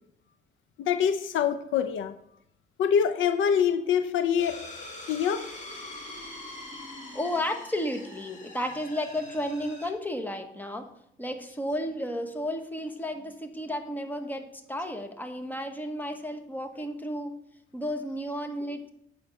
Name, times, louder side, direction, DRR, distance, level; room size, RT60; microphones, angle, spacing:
voice 1, 0.8-2.1 2.8-4.6 5.1-5.5, left 8 dB, 75° left, 0.6 m, -25 dB
sound 1, 4.4-9.9, left 2 dB, 40° left, 2.4 m, -43 dB
voice 2, 7.1-10.9 11.2-17.4 17.7-18.9, left 1 dB, 10° left, 1.2 m, -33 dB
8.5 x 5.8 x 5.3 m
cardioid pair, 90°, 20 cm